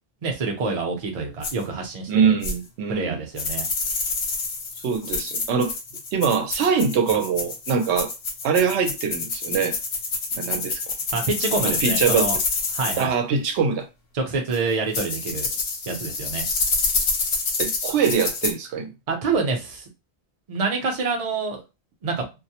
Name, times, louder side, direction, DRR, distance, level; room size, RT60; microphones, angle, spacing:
voice 1, 0.2-2.3 2.9-3.7 11.1-12.4 12.7-13.1 14.1-15.5 15.9-16.4 19.1-19.8 20.5-21.6 22.0-22.3, right 4 dB, 40° right, 0.6 m, -27 dB
sound 1, 1.4-1.5 2.4-2.5 3.4-13.0 14.5-14.6 14.9-18.5, left 4 dB, 65° left, 0.8 m, -27 dB
voice 2, 2.1-3.2 4.8-5.7 6.1-8.1 8.4-9.7 10.4-10.8 11.6-12.3 13.0-13.9 17.6-18.9, right 6 dB, 85° right, 0.9 m, -23 dB
2.2 x 2.0 x 2.7 m
omnidirectional pair, 1.1 m